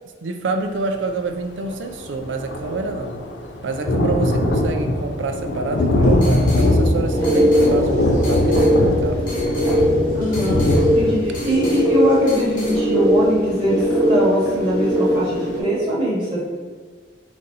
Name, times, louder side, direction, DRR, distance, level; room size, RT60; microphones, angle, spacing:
voice 1, 0.2-3.2 3.6-9.3, right 3 dB, 80° right, 6 dB, 0.4 m, -27 dB
Thunder, 1.4-1.5 1.7-14.3 14.8-14.9 15.2-15.3, left 1 dB, 70° left, 0.4 m, -21 dB
sound 1, 5.7-12.8, left 1 dB, 45° left, 1.0 m, -37 dB
sound 2, 7.1-15.6, equal, 10° left, 1.1 m, -20 dB
voice 2, 10.1-10.6 10.9-16.4, equal, 25° right, -7 dB, 1.1 m, -22 dB
4.1 x 2.5 x 3.9 m, 1.5 s
head